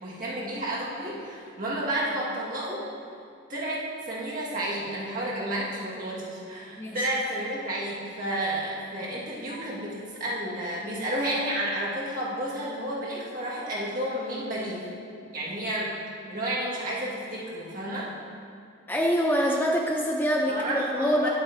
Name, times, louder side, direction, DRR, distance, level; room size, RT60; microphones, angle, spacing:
voice 1, 0.0-2.8 3.5-14.9 15.3-15.9 16.3-18.1 20.5-21.3, right 1 dB, 45° right, -6 dB, 1.7 m, -31 dB
voice 2, 18.9-21.3, equal, 10° left, 0 dB, 0.4 m, -25 dB
11.0 x 7.9 x 2.7 m, 2.3 s
head